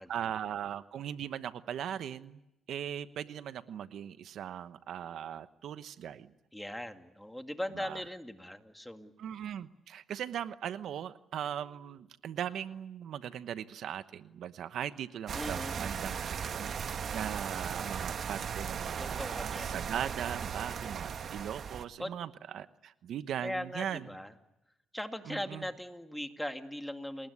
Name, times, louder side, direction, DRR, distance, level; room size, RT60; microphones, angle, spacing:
voice 1, 0.1-2.4 2.7-6.3 7.7-8.0 9.2-16.1 16.4-24.1 25.3-25.7, right 9 dB, 70° right, 12 dB, 1.0 m, -39 dB
voice 2, 6.5-9.1 15.4-16.2 19.0-19.8 22.0-22.1 23.4-24.3 24.9-27.3, left 1 dB, 5° left, 6 dB, 2.2 m, -39 dB
sound 1, 15.3-21.8, right 7 dB, 55° right, 1.4 m, -37 dB
29.0 x 20.0 x 9.7 m, 0.88 s
cardioid pair, 90°, 0 cm